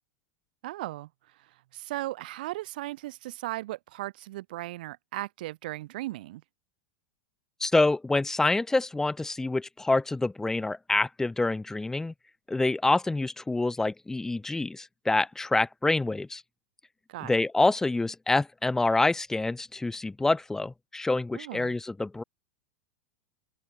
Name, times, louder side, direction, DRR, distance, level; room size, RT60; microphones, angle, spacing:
voice 1, 0.6-1.1 1.4-6.4 17.1-17.4 21.3-21.8, right 17 dB, 60° right, 4.8 m, -37 dB
voice 2, 7.6-12.1 12.5-16.4 17.2-22.2, left 2 dB, 10° left, 2.8 m, -26 dB
figure-of-eight pair, 90°, 5 cm